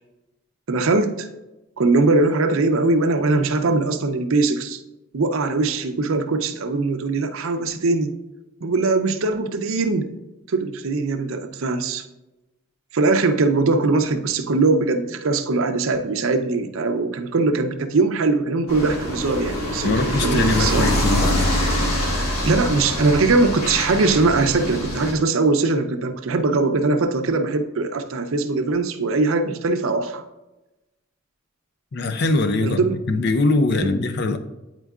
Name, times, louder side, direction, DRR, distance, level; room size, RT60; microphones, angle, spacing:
voice 1, 0.7-1.3 1.8-4.8 5.1-8.1 8.6-10.1 10.5-12.0 12.9-20.9 22.4-30.2 32.6-33.0 33.8-34.0, right 3 dB, 70° right, 0.6 m, -21 dB
sound 1, 18.7-25.1, equal, 90° left, 1.5 m, -24 dB
voice 2, 19.8-21.5 31.9-34.4, left 3 dB, 50° left, 0.5 m, -22 dB
9.0 x 4.4 x 2.4 m
head